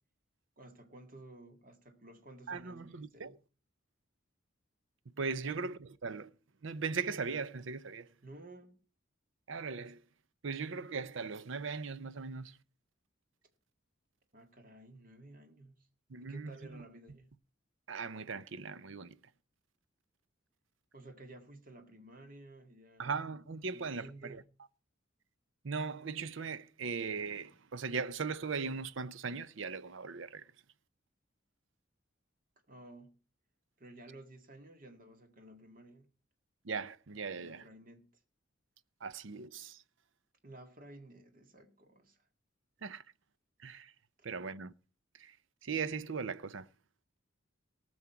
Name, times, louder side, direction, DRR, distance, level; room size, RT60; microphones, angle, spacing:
voice 1, 0.6-3.4 5.4-5.6 8.2-8.8 14.3-15.9 16.2-17.3 20.9-23.1 23.7-24.5 32.7-33.2 33.8-36.1 37.4-38.1 40.4-42.3, right 1 dB, 40° right, 1.9 m, -54 dB
voice 2, 2.5-3.4 5.2-6.3 6.6-8.1 9.5-10.0 10.4-12.6 16.1-16.8 17.9-19.2 23.0-24.4 25.6-30.5 36.6-37.7 39.0-39.8 42.8-43.0 43.6-43.9 44.2-44.7 45.1-45.4 45.6-46.7, right 5 dB, 70° right, 0.7 m, -39 dB
18.5 x 6.3 x 5.8 m
head